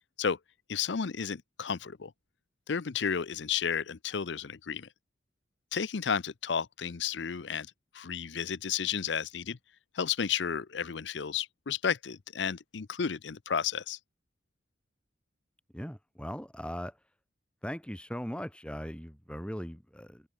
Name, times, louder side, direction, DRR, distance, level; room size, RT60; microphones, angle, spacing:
voice 1, 0.7-2.1 2.7-4.9 5.7-7.7 7.9-9.6 10.0-14.0, left 7 dB, 70° left, 0.6 m, -32 dB
voice 2, 15.7-17.0 17.6-20.2, equal, 5° left, 4.2 m, -39 dB
open air
head